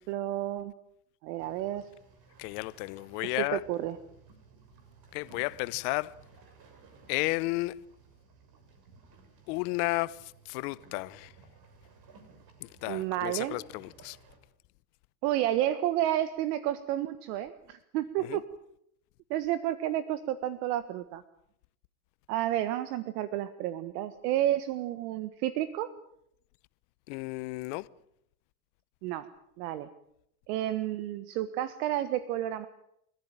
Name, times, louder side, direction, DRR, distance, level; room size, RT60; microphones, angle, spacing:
voice 1, 0.1-0.7 1.2-1.9 3.4-4.0 12.9-13.6 15.2-18.4 19.3-21.2 22.3-25.9 29.0-29.3 29.6-29.9 30.5-32.7, right 13 dB, 70° right, 1.6 m, -31 dB
sound 1, 1.4-14.4, right 4 dB, 45° right, 6.4 m, -57 dB
voice 2, 2.4-3.6 5.1-6.1 7.1-7.8 9.5-11.3 12.6-14.2 18.2-18.4 27.1-27.9, left 22 dB, 65° left, 1.1 m, -33 dB
30.0 x 15.0 x 9.0 m
supercardioid pair, 100°, 48 cm